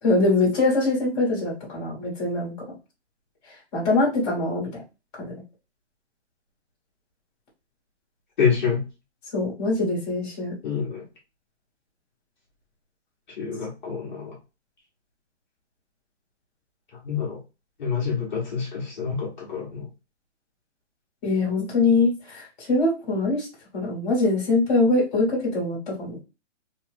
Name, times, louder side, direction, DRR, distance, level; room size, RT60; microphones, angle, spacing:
voice 1, 0.0-2.5 3.7-4.7 5.2-5.3 9.3-10.5 21.2-23.5 23.7-26.2, left 2 dB, 15° left, -4 dB, 1.0 m, -23 dB
voice 2, 8.4-8.8 10.6-11.0 13.4-14.4 17.0-17.4 17.8-19.9, left 6 dB, 40° left, -3 dB, 0.9 m, -27 dB
2.9 x 2.1 x 3.1 m, 0.28 s
hypercardioid pair, 165°, 36 cm